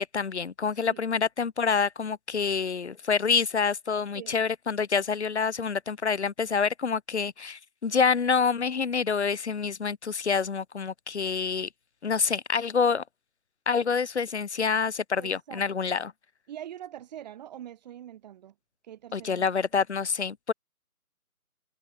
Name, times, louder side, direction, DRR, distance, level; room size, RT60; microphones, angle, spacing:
voice 1, 0.0-11.7 12.0-13.0 13.7-16.1 19.1-20.5, left 5 dB, 45° left, 1.7 m, -27 dB
voice 2, 15.2-15.9 16.5-18.5 18.8-19.5, right 11 dB, 25° right, 7.6 m, -44 dB
figure-of-eight pair, 150°, 46 cm